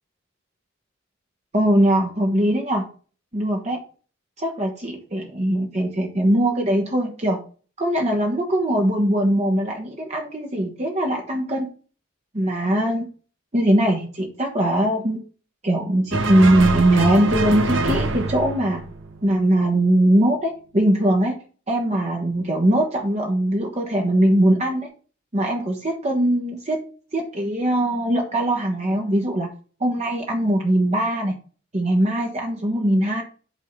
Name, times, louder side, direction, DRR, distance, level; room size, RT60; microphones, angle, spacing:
voice 1, 1.5-2.9 3.3-3.8 4.4-7.4 7.8-11.7 12.3-13.1 13.5-15.2 15.6-18.8 19.2-21.4 21.7-24.9 25.3-26.8 27.1-29.5 29.8-31.3 31.7-33.2, right 1 dB, 35° right, 1 dB, 1.1 m, -21 dB
sound 1, 16.1-19.6, right 2 dB, 65° right, 1.1 m, -25 dB
8.3 x 3.7 x 5.4 m, 0.39 s
head